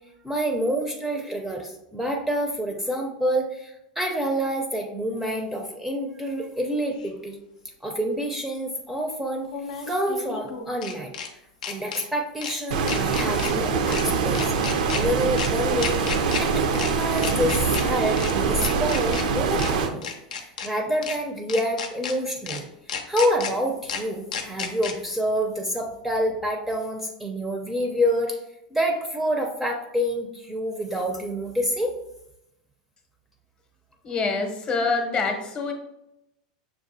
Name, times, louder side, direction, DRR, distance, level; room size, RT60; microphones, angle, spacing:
voice 1, 0.2-7.4 7.8-11.1 11.7-14.4 14.7-16.0 16.4-22.7 23.1-28.4 28.7-31.9, equal, 5° right, 1 dB, 0.5 m, -27 dB
sound 1, 7.0-7.1 9.4-11.3 11.6-12.0 12.4-12.6 12.9-13.5 13.9-14.0 14.3-15.0 15.4-15.5 15.8-16.4 16.7-16.9 17.2-17.8 18.2-18.3 18.6-19.2 19.6-19.7 20.0-20.7 21.0-21.2 21.5-22.1 22.5-22.6 22.9-23.5 23.9-24.0 24.3-24.9, left 6 dB, 85° left, 0.6 m, -32 dB
Stream, 12.7-19.9, right 5 dB, 75° right, 0.5 m, -24 dB
voice 2, 34.0-35.7, left 4 dB, 30° left, 4 dB, 0.7 m, -25 dB
6.1 x 2.3 x 2.6 m, 0.86 s
hypercardioid pair, 110°, 4 cm